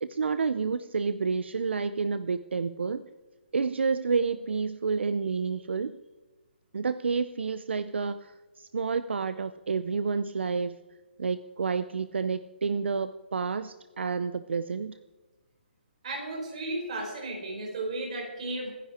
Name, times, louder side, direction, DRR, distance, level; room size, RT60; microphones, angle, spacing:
voice 1, 0.0-3.1 3.5-6.0 6.7-10.8 11.2-14.9, right 5 dB, 75° right, 12 dB, 0.7 m, -29 dB
voice 2, 16.0-18.7, right 2 dB, 35° right, 0 dB, 4.8 m, -34 dB
26.0 x 10.0 x 4.4 m, 1.2 s
hypercardioid pair, 180°, 6 cm